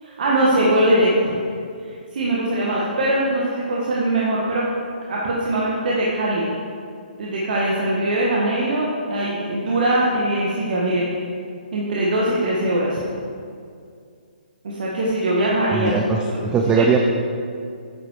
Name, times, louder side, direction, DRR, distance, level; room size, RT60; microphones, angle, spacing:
voice 1, 0.0-1.4 2.1-4.6 5.1-6.5 7.2-11.0 11.7-13.0 14.6-15.9 16.3-16.4 16.8-16.9, right 1 dB, 55° right, -5 dB, 1.7 m, -21 dB
voice 2, 15.7-17.0, right 5 dB, 15° right, 2 dB, 0.6 m, -20 dB
9.6 x 7.9 x 4.7 m, 2.3 s
figure-of-eight pair, 140°, 5 cm